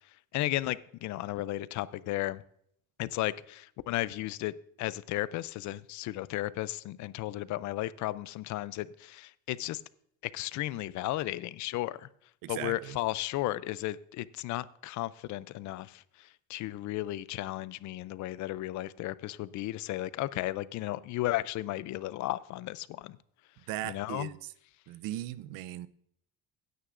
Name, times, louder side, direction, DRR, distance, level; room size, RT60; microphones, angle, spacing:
voice 1, 0.3-2.4 3.0-9.8 10.2-12.1 12.5-23.2 23.8-24.3, left 16 dB, 60° left, 0.4 m, -34 dB
voice 2, 12.4-13.0 23.7-24.5 24.9-25.9, right 14 dB, 85° right, 0.6 m, -38 dB
16.0 x 9.5 x 2.5 m
cardioid pair, 160°, 33 cm